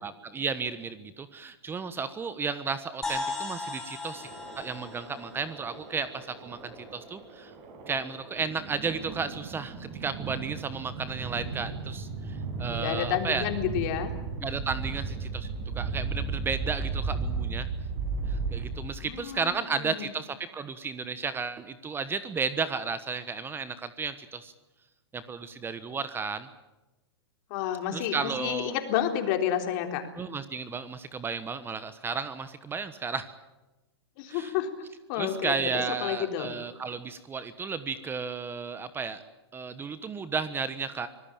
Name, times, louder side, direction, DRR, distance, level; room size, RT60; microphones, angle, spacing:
voice 1, 0.0-4.3 4.6-7.5 7.9-13.5 14.4-15.5 15.7-17.7 18.3-24.5 25.1-26.5 27.9-28.7 30.2-33.3 34.3-34.5 35.1-39.2 39.5-41.1, right 5 dB, 15° right, 13 dB, 1.2 m, -33 dB
sound 1, 3.0-6.8, left 3 dB, 5° left, 5.6 m, -38 dB
sound 2, 4.1-19.2, right 4 dB, 40° right, 7.8 m, -35 dB
voice 2, 12.7-14.1 19.0-20.1 27.5-30.0 34.2-34.7 35.1-36.5, left 10 dB, 50° left, 5 dB, 3.7 m, -30 dB
25.0 x 19.0 x 8.9 m, 1.1 s
hypercardioid pair, 120°, 14 cm